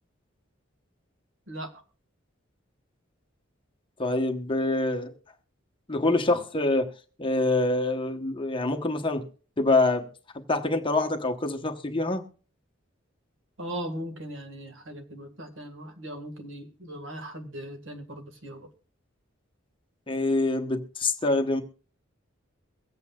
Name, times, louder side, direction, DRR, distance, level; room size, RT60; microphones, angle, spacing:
voice 1, 1.5-1.8 13.6-18.7, right 1 dB, 70° right, 1.7 m, -39 dB
voice 2, 4.0-5.1 5.9-6.9 7.2-9.2 9.6-10.1 10.5-12.2 20.1-21.6, left 2 dB, 25° left, 1.0 m, -25 dB
23.0 x 8.1 x 2.3 m
head